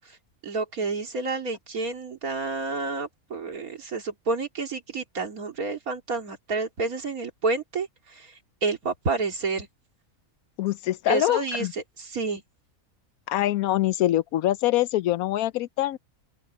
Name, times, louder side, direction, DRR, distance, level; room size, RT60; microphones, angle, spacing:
voice 1, 0.4-8.3 8.6-9.7 11.1-12.4, right 3 dB, 85° right, 3.1 m, -29 dB
voice 2, 10.6-11.7 13.3-16.0, left 14 dB, 85° left, 1.1 m, -24 dB
open air
omnidirectional pair, 1.5 m